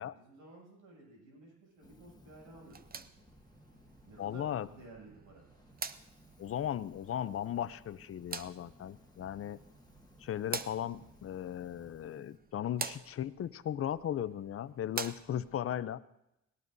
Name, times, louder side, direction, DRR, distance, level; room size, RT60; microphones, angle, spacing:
voice 1, 0.0-3.1 4.0-5.5, right 2 dB, 85° right, -2 dB, 7.5 m, -55 dB
Fire, 1.7-4.9 5.3-12.4, left 2 dB, 15° left, 1.5 m, -62 dB
sound 1, 2.6-15.6, right 5 dB, 30° right, 0.8 m, -47 dB
voice 2, 4.2-4.7 6.4-9.6 10.2-16.0, left 10 dB, 50° left, 15 dB, 0.6 m, -37 dB
20.0 x 17.5 x 2.7 m, 0.86 s
cardioid pair, 90°, 30 cm